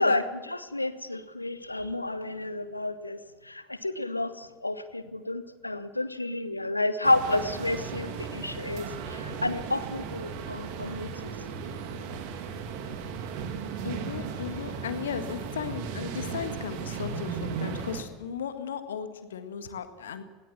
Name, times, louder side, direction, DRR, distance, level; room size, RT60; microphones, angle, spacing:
voice 1, 0.0-11.3, left 2 dB, 85° left, 13 dB, 1.1 m, -30 dB
sound 1, 7.0-18.0, right 6 dB, 55° right, 2.6 m, -36 dB
voice 2, 13.8-20.2, left 7 dB, 70° left, 9 dB, 1.8 m, -36 dB
19.5 x 18.5 x 7.3 m, 1.3 s
figure-of-eight pair, 75°, 0 cm